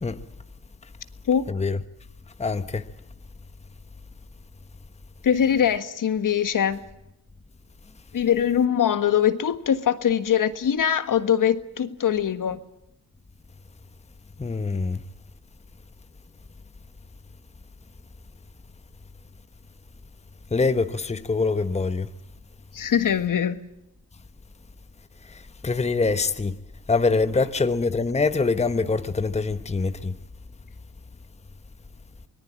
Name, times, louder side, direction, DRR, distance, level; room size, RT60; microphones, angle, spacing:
voice 1, 1.5-1.8 2.4-2.9 14.4-15.0 20.5-22.1 25.3-26.5 26.9-30.2, left 4 dB, 15° left, 1.2 m, -24 dB
voice 2, 5.2-6.8 8.1-12.6 22.7-23.6, left 9 dB, 55° left, 1.6 m, -22 dB
25.5 x 19.0 x 8.8 m
cardioid pair, 80°, 38 cm